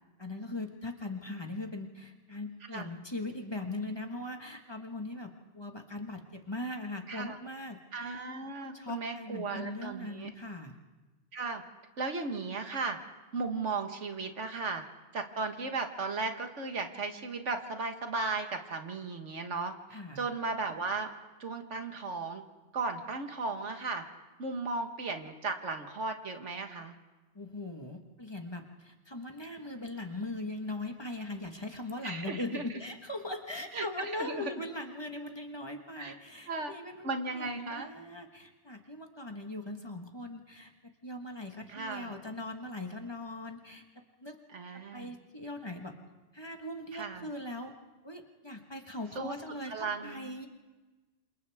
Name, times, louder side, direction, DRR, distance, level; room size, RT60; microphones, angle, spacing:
voice 1, 0.2-7.8 8.6-10.8 19.9-20.2 27.3-44.4 44.7-45.9 46.3-47.7 48.0-50.5, left 2 dB, 20° left, 3 dB, 1.5 m, -40 dB
voice 2, 7.9-10.3 11.3-11.6 12.0-13.0 13.3-14.8 15.1-21.1 21.4-22.4 22.7-24.0 24.4-26.9 32.0-32.7 33.7-34.5 36.0-36.2 36.5-36.7 37.0-37.9 41.7-42.2 44.5-45.1 46.9-47.3 49.2-49.3 49.7-50.3, right 3 dB, 90° right, 5 dB, 1.9 m, -36 dB
27.5 x 27.5 x 3.6 m, 1.2 s
omnidirectional pair, 1.2 m